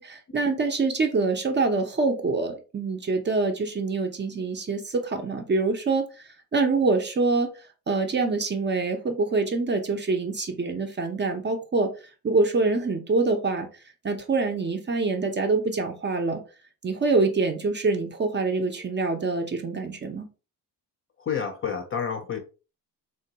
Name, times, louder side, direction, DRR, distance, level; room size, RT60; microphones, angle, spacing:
voice 1, 0.0-6.0 6.5-7.5 7.9-11.9 12.2-13.7 14.0-16.4 16.8-20.3, right 3 dB, 25° right, 0.5 m, -25 dB
voice 2, 21.2-22.4, left 7 dB, 35° left, 0.4 m, -29 dB
3.7 x 2.2 x 2.7 m
cardioid pair, 130°, 41 cm